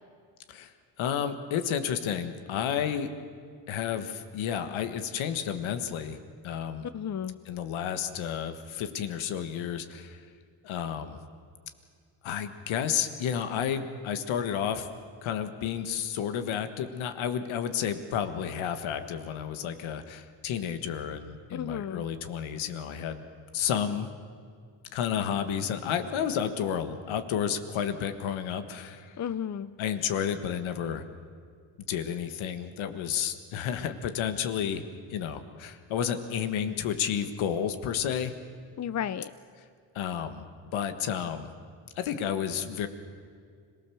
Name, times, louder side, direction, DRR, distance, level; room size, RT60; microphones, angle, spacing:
voice 1, 1.0-3.1 3.7-6.2 6.4-6.9 7.4-10.2 10.6-11.2 12.2-14.9 15.2-23.2 23.5-24.1 24.9-29.1 29.8-31.0 31.9-34.8 35.1-38.3 39.9-40.4 40.7-41.5 42.0-42.9, left 8 dB, 90° left, 9 dB, 1.5 m, -31 dB
voice 2, 6.9-7.4 21.5-22.0 29.2-29.7 38.8-39.3, left 9 dB, 35° left, 14 dB, 0.7 m, -33 dB
26.0 x 19.0 x 7.0 m, 2.1 s
cardioid pair, 80°, 46 cm